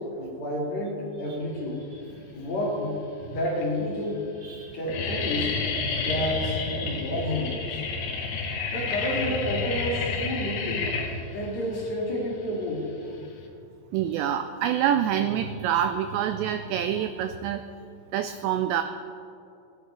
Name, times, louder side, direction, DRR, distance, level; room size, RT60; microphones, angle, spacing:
voice 1, 0.0-1.8 2.3-4.2 4.7-5.5 5.9-7.8 8.7-10.8 11.3-12.8, left 1 dB, 45° left, -6 dB, 2.8 m, -30 dB
sound 1, 2.3-2.9 3.5-3.6 3.9-4.3 4.5-13.5, left 4 dB, 70° left, 3.3 m, -30 dB
voice 2, 4.4-4.8 8.1-8.7 13.9-17.6 18.1-18.8, right 10 dB, 90° right, 9 dB, 2.5 m, -27 dB
18.5 x 10.5 x 3.3 m, 2.5 s
omnidirectional pair, 5.5 m